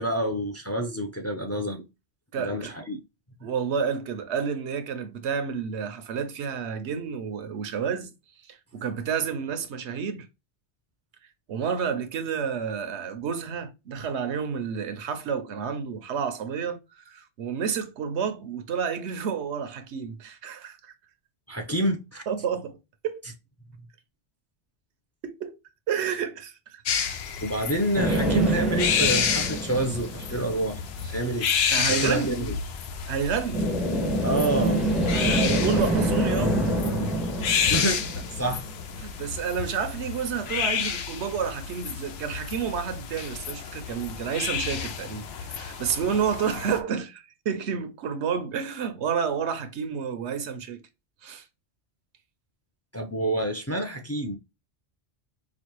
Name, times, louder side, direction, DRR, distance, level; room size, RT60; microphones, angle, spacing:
voice 1, 0.0-1.9 2.4-3.0 21.5-22.2 27.4-30.8 31.1-31.5 31.9-32.6 34.2-34.9 37.7-38.0 38.4-38.6 52.9-54.4, right 1 dB, 20° left, 0.5 m, -28 dB
voice 2, 2.3-2.7 3.4-8.1 8.5-10.3 11.5-20.9 22.3-22.8 23.0-23.2 25.2-25.6 25.9-27.2 30.3-30.4 31.0-31.1 31.7-32.4 33.1-33.6 35.1-36.6 39.0-50.8 51.2-51.4, right 7 dB, 80° right, 1.0 m, -30 dB
oiseau+train pisseloup, 26.9-46.8, left 7 dB, 70° left, 0.9 m, -30 dB
sound 1, 27.9-30.7 33.5-38.9, right 1 dB, ahead, 0.8 m, -26 dB
5.0 x 2.4 x 3.0 m
omnidirectional pair, 1.1 m